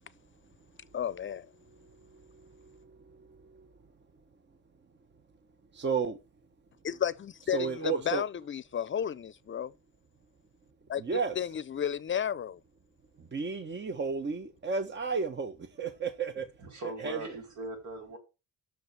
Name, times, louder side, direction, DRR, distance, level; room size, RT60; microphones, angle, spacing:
voice 1, 0.9-1.5 6.8-9.7 10.9-12.6, left 9 dB, 40° left, 0.6 m, -33 dB
voice 2, 5.7-6.2 7.5-8.2 11.0-11.3 13.3-16.4 17.0-17.2, right 5 dB, 35° right, 1.2 m, -32 dB
voice 3, 16.6-18.2, right 2 dB, 70° right, 5.3 m, -40 dB
7.7 x 6.4 x 6.8 m
cardioid pair, 90°, 30 cm